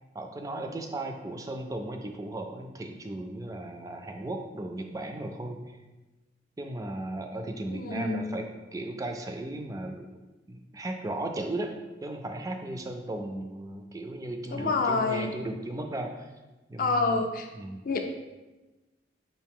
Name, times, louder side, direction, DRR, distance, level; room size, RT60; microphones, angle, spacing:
voice 1, 0.1-5.8 6.6-10.2 10.5-11.7 12.0-16.3 16.7-17.2 17.6-17.8, right 1 dB, 20° right, 5 dB, 0.3 m, -36 dB
voice 2, 7.7-8.4 14.5-15.3 16.8-17.5 17.8-18.2, left 3 dB, 45° left, 5 dB, 0.4 m, -28 dB
5.6 x 2.6 x 3.5 m, 1.1 s
head